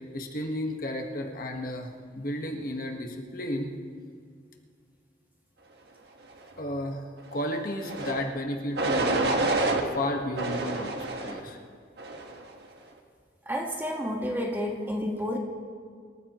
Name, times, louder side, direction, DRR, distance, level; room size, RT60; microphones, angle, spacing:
voice 1, 0.1-3.7 6.6-9.6 9.8-11.0 11.2-11.6, left 1 dB, 50° left, 2 dB, 1.5 m, -33 dB
sound 1, 7.8-8.2 8.7-9.8 10.4-11.4 12.0-12.4, right 2 dB, 65° right, 1.6 m, -28 dB
voice 2, 13.4-15.4, equal, 10° right, 0 dB, 1.6 m, -30 dB
26.5 x 14.0 x 3.1 m, 2.1 s
head